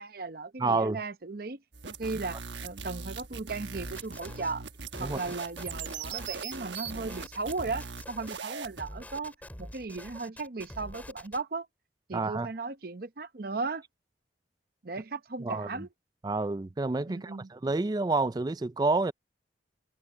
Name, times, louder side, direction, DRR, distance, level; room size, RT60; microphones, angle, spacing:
voice 1, 0.0-4.7 5.0-11.7 12.1-13.8 14.8-15.9 17.1-17.5, right 3 dB, 50° right, 0.8 m, -36 dB
voice 2, 0.6-1.0 5.0-5.2 12.1-12.5 15.4-15.9 16.2-19.1, right 3 dB, 20° right, 0.3 m, -29 dB
sound 1, 1.7-8.8, right 5 dB, 80° right, 1.2 m, -40 dB
sound 2, 3.7-4.5 4.9-8.4 8.8-11.4, left 1 dB, 10° left, 2.9 m, -46 dB
head